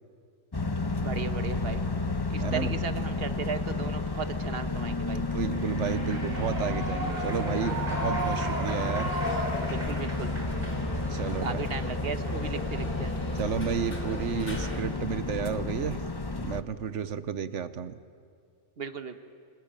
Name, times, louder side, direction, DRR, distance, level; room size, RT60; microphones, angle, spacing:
sound 1, 0.5-16.6, left 2 dB, 20° left, 0.9 m, -31 dB
voice 1, 1.0-1.9 2.3-5.2 9.6-10.4 11.4-13.1 18.8-19.2, right 5 dB, 55° right, 10 dB, 1.4 m, -36 dB
voice 2, 2.4-2.8 5.1-9.2 11.1-11.6 13.4-16.0 16.4-18.0, right 7 dB, 85° right, 14 dB, 1.3 m, -32 dB
Human voice / Clapping / Cheering, 5.5-11.5, right 1 dB, 35° right, 4.0 m, -35 dB
sound 2, 7.0-14.8, left 1 dB, 50° left, 3.2 m, -40 dB
27.5 x 21.0 x 8.9 m, 2.2 s
omnidirectional pair, 1.2 m